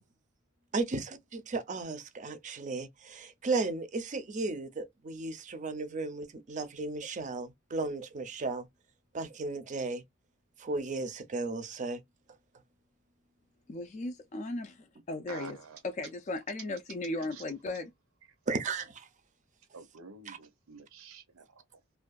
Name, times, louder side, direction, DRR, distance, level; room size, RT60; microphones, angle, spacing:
voice 1, 0.7-8.7 9.1-10.0 10.6-12.0 18.5-19.1 20.3-20.4, right 3 dB, 35° right, 0.5 m, -35 dB
voice 2, 13.7-15.6 16.0-17.9, left 2 dB, 35° left, 0.3 m, -37 dB
voice 3, 15.3-15.8 17.3-17.8 19.7-21.6, right 4 dB, 90° right, 0.7 m, -48 dB
2.5 x 2.2 x 2.2 m
head